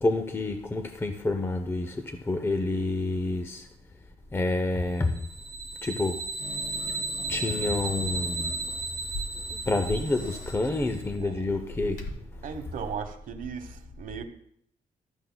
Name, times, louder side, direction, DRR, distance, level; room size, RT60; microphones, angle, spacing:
voice 1, 0.0-3.7 4.3-5.3 5.8-12.4, left 2 dB, 15° left, 0.5 m, -29 dB
sound 1, 5.1-11.0, right 3 dB, 20° right, 1.7 m, -35 dB
Growling / Hiss, 6.4-12.1, left 2 dB, 65° left, 1.6 m, -41 dB
voice 2, 11.2-11.6 12.4-14.3, right 7 dB, 65° right, 1.1 m, -37 dB
15.5 x 12.5 x 2.2 m
cardioid pair, 140°, 15 cm